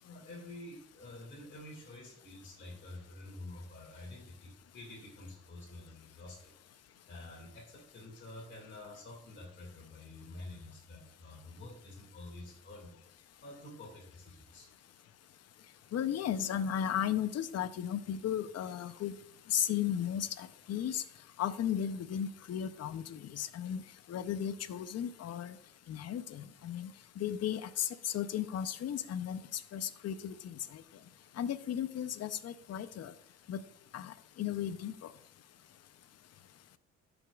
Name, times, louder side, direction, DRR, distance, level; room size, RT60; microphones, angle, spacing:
voice 1, 0.0-6.6 7.1-12.9 13.4-14.7, left 2 dB, 40° left, -2 dB, 2.3 m, -49 dB
voice 2, 15.9-19.2 19.5-21.0 21.4-23.8 24.1-25.6 25.9-26.9 27.2-30.8 31.4-33.1 33.5-33.6 33.9-34.9, left 9 dB, 55° left, 13 dB, 0.6 m, -35 dB
11.5 x 5.2 x 2.3 m, 0.69 s
cardioid pair, 90°, 30 cm